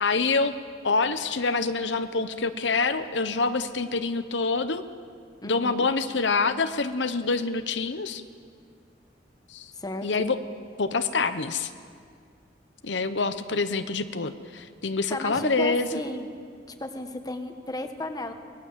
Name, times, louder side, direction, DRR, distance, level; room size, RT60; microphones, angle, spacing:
voice 1, 0.0-0.5 0.8-4.8 5.4-8.2 9.5-9.7 10.0-10.4 10.8-11.7 12.8-15.9, left 4 dB, 80° left, 10 dB, 0.9 m, -26 dB
voice 2, 5.4-5.8 9.7-10.1 15.1-16.3 16.8-18.3, left 1 dB, 20° left, 6 dB, 1.5 m, -33 dB
25.0 x 19.0 x 7.5 m, 2.2 s
head